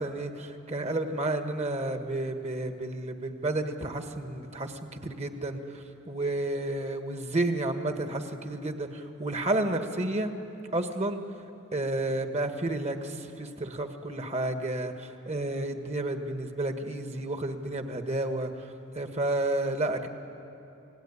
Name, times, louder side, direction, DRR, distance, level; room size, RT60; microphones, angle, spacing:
voice 1, 0.0-10.3 10.7-11.2 11.7-18.5 18.9-20.1, right 2 dB, 30° right, 6 dB, 1.5 m, -31 dB
28.0 x 18.0 x 9.8 m, 2.9 s
head